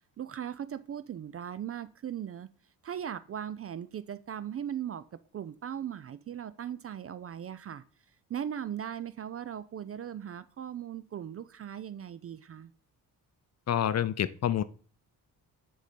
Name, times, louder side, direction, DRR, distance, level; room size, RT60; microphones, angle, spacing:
voice 1, 0.2-2.5 2.8-5.0 5.3-7.8 8.3-12.7, right 9 dB, 35° right, 0.4 m, -38 dB
voice 2, 13.7-14.6, left 10 dB, 35° left, 0.5 m, -27 dB
6.9 x 3.8 x 4.3 m
hypercardioid pair, 45°, 46 cm